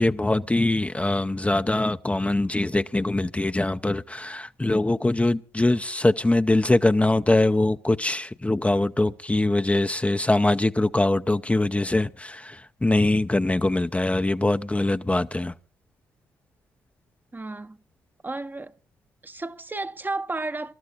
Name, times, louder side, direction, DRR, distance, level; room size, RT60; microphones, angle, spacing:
voice 1, 0.0-15.5, left 2 dB, 15° left, 0.7 m, -23 dB
voice 2, 17.3-17.8 18.2-18.8 19.2-20.7, right 2 dB, 20° right, 0.9 m, -32 dB
26.5 x 13.0 x 2.5 m
hypercardioid pair, 40°, 9 cm